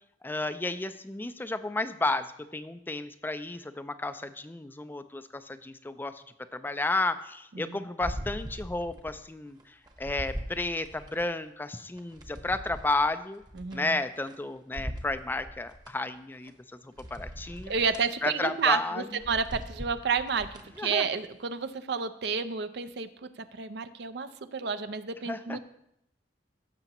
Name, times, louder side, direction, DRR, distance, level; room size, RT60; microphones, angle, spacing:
voice 1, 0.2-6.2 6.5-13.4 13.7-17.7 18.2-19.0 20.8-21.0 25.3-25.6, left 2 dB, 10° left, 11 dB, 0.3 m, -32 dB
voice 2, 7.5-7.8 13.6-14.0 17.7-25.6, right 5 dB, 65° right, 12 dB, 0.5 m, -31 dB
sound 1, 8.0-9.2 9.6-11.3 11.8-14.4 14.7-15.9 16.5-16.6 17.0-18.1 18.5-18.7 19.1-20.8 21.2-21.3, equal, 25° right, 1.0 m, -41 dB
16.0 x 6.8 x 3.0 m, 0.76 s
head